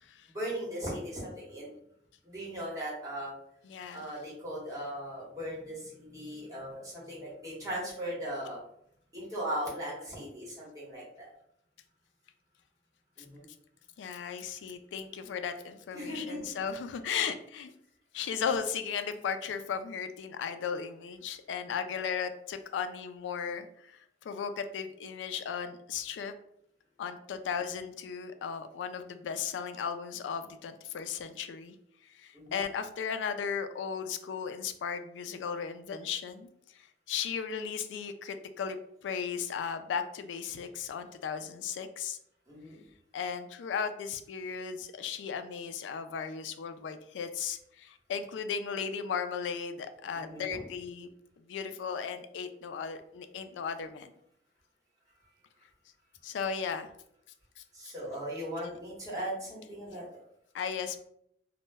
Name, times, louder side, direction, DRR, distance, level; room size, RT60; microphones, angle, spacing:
voice 1, 0.3-1.7 2.2-3.3 3.9-8.6 9.1-11.3 13.2-13.4 15.9-16.6 32.3-32.5 42.5-42.8 50.1-50.6 57.7-60.1, equal, 20° right, -6 dB, 1.0 m, -38 dB
voice 2, 3.6-4.1 14.0-17.7 18.1-26.3 27.0-31.8 32.1-36.5 36.7-42.2 43.1-51.1 51.5-54.1 56.2-56.9 57.6-57.7 58.6-58.8 60.5-61.0, left 6 dB, 85° left, 9 dB, 0.3 m, -36 dB
2.1 x 2.0 x 3.2 m, 0.72 s
head